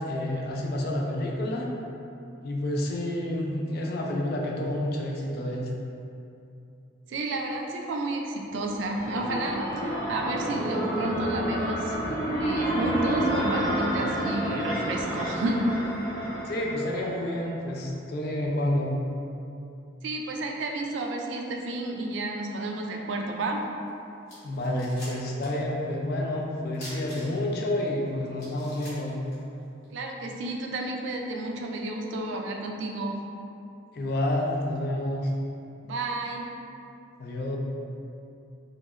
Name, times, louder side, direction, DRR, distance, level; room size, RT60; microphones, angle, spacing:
voice 1, 0.0-1.7 2.4-5.7 16.4-19.0 24.4-29.2 33.9-35.3 37.2-37.6, left 1 dB, 50° left, -1 dB, 0.3 m, -29 dB
voice 2, 7.1-12.0 12.4-15.7 20.0-23.6 29.9-33.2 35.8-36.5, right 2 dB, 65° right, 1 dB, 0.3 m, -31 dB
sound 1, 8.5-17.4, right 1 dB, 20° left, 0.8 m, -29 dB
sound 2, 23.9-24.0 24.3-25.6 25.9-26.0 26.7-27.6 28.0-28.1 28.4-29.9, left 1 dB, 85° left, 1.3 m, -45 dB
3.0 x 2.8 x 2.4 m, 2.7 s
head